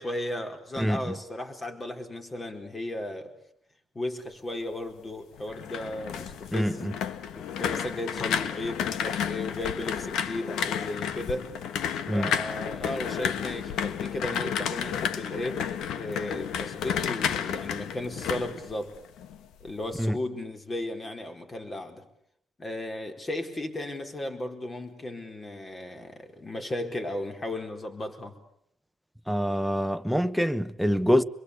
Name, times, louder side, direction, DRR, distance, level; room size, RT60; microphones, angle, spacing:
voice 1, 0.0-3.3 3.9-6.9 7.3-11.5 12.1-18.9 19.6-22.0 22.6-28.4, left 1 dB, 30° left, 4.5 m, -35 dB
voice 2, 0.8-1.1 6.5-6.9 12.1-12.3 20.0-20.2 29.3-31.2, equal, ahead, 1.2 m, -25 dB
sound 1, 5.4-19.4 19.7-20.1, left 8 dB, 80° left, 1.3 m, -32 dB
26.5 x 22.5 x 8.4 m
cardioid pair, 90°, 0 cm